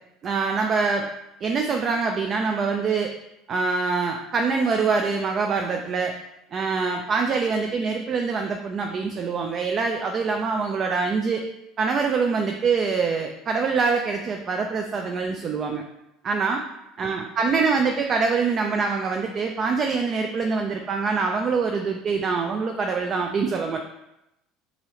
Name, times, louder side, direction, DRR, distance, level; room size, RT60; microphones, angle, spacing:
voice 1, 0.2-1.1 1.4-3.1 3.5-6.1 6.5-11.5 11.8-15.8 16.2-16.6 17.0-23.9, right 4 dB, 40° right, 3 dB, 0.4 m, -24 dB
4.0 x 2.8 x 3.0 m, 0.88 s
hypercardioid pair, 80°, 0 cm